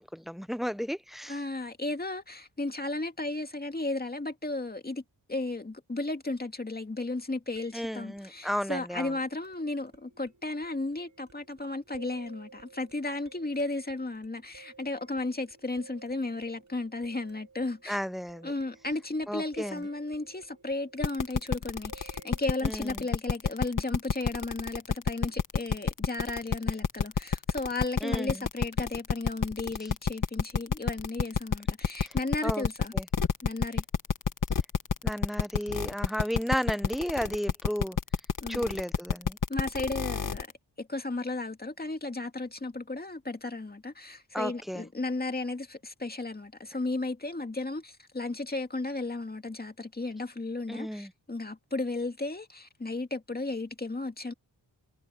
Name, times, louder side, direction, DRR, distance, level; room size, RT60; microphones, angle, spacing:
voice 1, 0.0-1.4 7.7-9.1 17.9-18.5 19.3-19.8 22.6-23.0 28.0-28.5 32.4-32.7 32.9-33.0 35.0-38.0 38.5-39.4 44.3-44.9 50.7-51.1, equal, ahead, 0.5 m, -33 dB
voice 2, 1.3-5.0 5.3-18.0 18.4-32.9 33.4-33.8 38.4-38.6 39.5-40.5 40.8-54.3, left 2 dB, 20° left, 2.2 m, -34 dB
sound 1, 7.6-22.7, right 5 dB, 40° right, 6.3 m, -56 dB
sound 2, 21.0-40.5, left 6 dB, 50° left, 1.4 m, -28 dB
wide cardioid pair, 80°, 41 cm